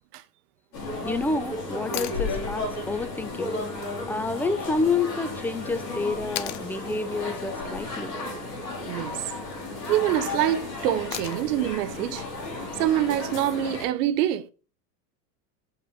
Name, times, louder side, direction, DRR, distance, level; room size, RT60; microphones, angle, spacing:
sound 1, 0.7-13.9, left 2 dB, 90° left, 3.7 m, -34 dB
voice 1, 1.0-3.6 4.1-8.2, left 3 dB, 5° left, 0.6 m, -29 dB
sound 2, 1.9-2.2 4.5-4.6 6.4-6.7 8.7-9.1 11.1-11.6 13.7-13.8, left 14 dB, 70° left, 0.9 m, -35 dB
voice 2, 8.9-9.2 9.9-12.2 12.8-14.5, right 12 dB, 70° right, 0.9 m, -25 dB
7.1 x 5.5 x 3.6 m
hypercardioid pair, 95°, 48 cm